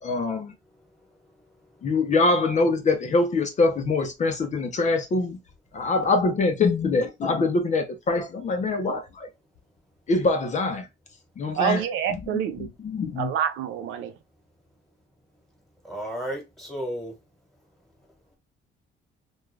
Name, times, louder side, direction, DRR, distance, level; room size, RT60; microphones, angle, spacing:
voice 1, 0.0-0.5 1.8-5.4 5.7-9.3 10.1-10.9 11.4-11.8 12.3-13.3, left 3 dB, 35° left, 0.5 m, -24 dB
voice 2, 11.5-12.7 13.2-14.1, right 9 dB, 85° right, 0.5 m, -27 dB
voice 3, 15.8-17.1, equal, ahead, 1.3 m, -33 dB
2.4 x 2.3 x 3.1 m
cardioid pair, 120°, 20 cm